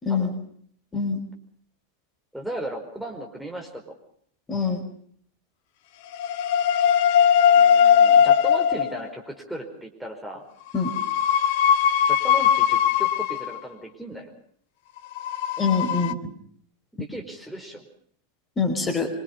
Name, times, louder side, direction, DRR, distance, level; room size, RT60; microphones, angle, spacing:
voice 1, 0.0-0.4 0.9-1.2 4.5-4.8 10.7-10.9 15.6-16.3 18.6-19.1, left 4 dB, 15° left, 4 dB, 4.8 m, -24 dB
voice 2, 2.3-3.8 7.5-10.4 12.0-14.3 16.9-17.9, right 1 dB, ahead, 1 dB, 4.9 m, -36 dB
sound 1, 6.1-9.1 10.8-13.6 15.1-16.1, left 8 dB, 50° left, 1.0 m, -19 dB
25.0 x 25.0 x 5.4 m, 0.63 s
figure-of-eight pair, 90°, 0 cm